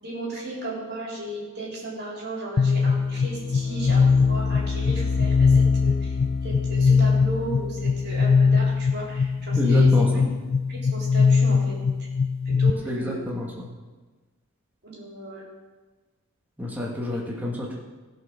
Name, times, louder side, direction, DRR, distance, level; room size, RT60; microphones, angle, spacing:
voice 1, 0.0-6.1 6.4-9.9 10.7-11.7 12.5-13.2 14.8-15.5, right 2 dB, 50° right, -4 dB, 4.0 m, -35 dB
sound 1, 2.6-12.7, left 5 dB, 45° left, 0.4 m, -21 dB
voice 2, 9.6-10.3 12.8-13.7 16.6-17.7, left 1 dB, 10° right, -4 dB, 1.7 m, -28 dB
16.0 x 5.7 x 6.4 m, 1.3 s
head